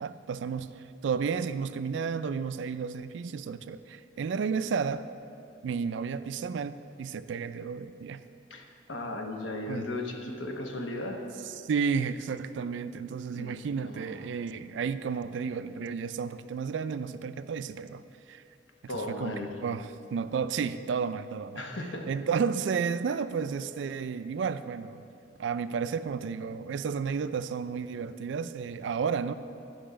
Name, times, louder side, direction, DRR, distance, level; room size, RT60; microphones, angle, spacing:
voice 1, 0.0-5.1 5.6-8.2 9.7-9.9 11.6-18.0 18.3-18.4 18.8-19.3 19.6-21.6 22.1-25.0 25.4-29.3, right 6 dB, 75° right, 13 dB, 0.3 m, -32 dB
voice 2, 8.5-11.2 13.3-13.5 13.8-14.2 18.9-19.5 21.6-22.1, left 2 dB, 85° left, 2 dB, 1.0 m, -36 dB
10.5 x 5.5 x 5.1 m, 2.6 s
head